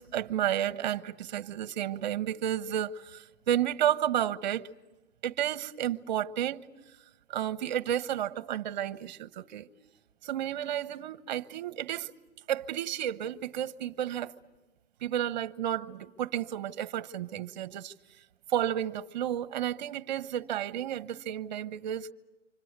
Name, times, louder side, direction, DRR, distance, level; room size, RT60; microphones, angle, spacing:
voice 1, 0.0-4.7 5.2-6.7 7.3-9.7 10.2-12.1 12.5-14.3 15.0-17.9 18.5-22.1, right 11 dB, 35° right, 1.0 m, -32 dB
28.0 x 26.0 x 8.1 m
hypercardioid pair, 170°, 37 cm